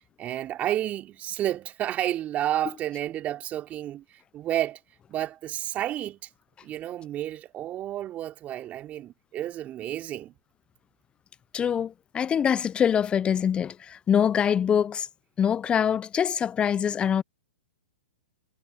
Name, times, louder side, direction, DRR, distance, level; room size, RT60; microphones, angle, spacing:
voice 1, 0.2-4.0 4.3-4.8 5.1-6.3 6.6-10.3, right 12 dB, 25° right, 4.4 m, -31 dB
voice 2, 11.5-15.1 15.4-17.2, left 8 dB, 15° left, 0.8 m, -24 dB
hypercardioid pair, 120°, 6 cm